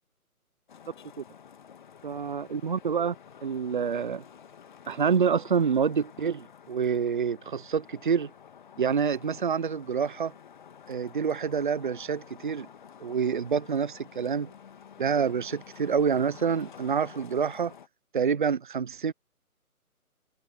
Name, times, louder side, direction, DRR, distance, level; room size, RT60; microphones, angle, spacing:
Traffic noise roadway noise, 0.7-17.9, left 8 dB, 30° left, 1.9 m, -50 dB
voice 1, 2.0-3.1 3.4-4.2 4.9-8.3 8.8-10.3 10.9-12.7 13.0-14.5 15.0-17.7 18.1-19.1, right 6 dB, 35° right, 0.9 m, -27 dB
figure-of-eight pair, 145°, 44 cm